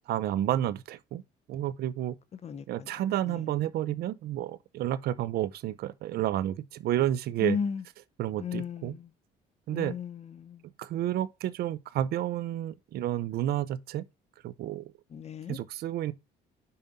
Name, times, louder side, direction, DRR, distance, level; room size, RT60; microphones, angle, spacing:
voice 1, 0.1-1.2 1.5-2.2 2.7-7.6 8.2-8.9 9.7-10.0 10.8-14.1 14.4-14.9 15.5-16.1, right 12 dB, 70° right, 0.7 m, -30 dB
voice 2, 2.4-2.9 3.3-3.4 7.4-7.8 8.4-9.1 9.7-10.6 15.1-15.6, left 6 dB, 40° left, 0.9 m, -35 dB
5.7 x 5.4 x 4.2 m
cardioid pair, 110°, 17 cm